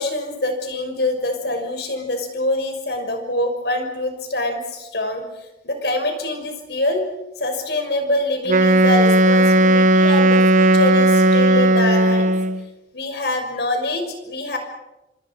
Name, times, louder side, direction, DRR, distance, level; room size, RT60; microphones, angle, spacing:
voice 1, 0.0-5.2 5.6-7.0 7.4-12.4 12.9-14.6, left 1 dB, 65° left, 5 dB, 6.0 m, -25 dB
Wind instrument woodwind instrument, 8.5-12.6, right 1 dB, 45° right, 1.0 m, -15 dB
27.0 x 26.5 x 6.1 m, 0.97 s
head